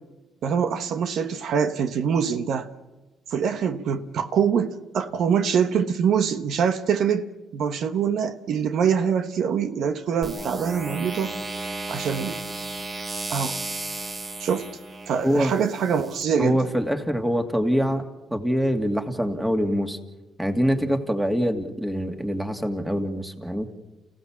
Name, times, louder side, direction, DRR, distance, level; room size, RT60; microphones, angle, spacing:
voice 1, 0.4-2.7 3.3-11.3 11.9-12.4 13.3-13.6 14.4-14.7 15.1-16.6, right 7 dB, 70° right, 1.1 m, -24 dB
sound 1, 10.2-16.2, right 2 dB, 45° right, 5.3 m, -34 dB
voice 2, 16.4-18.0 18.3-20.0 20.4-23.7, equal, 10° right, 2.5 m, -24 dB
29.5 x 16.0 x 7.5 m
cardioid pair, 90°, 0 cm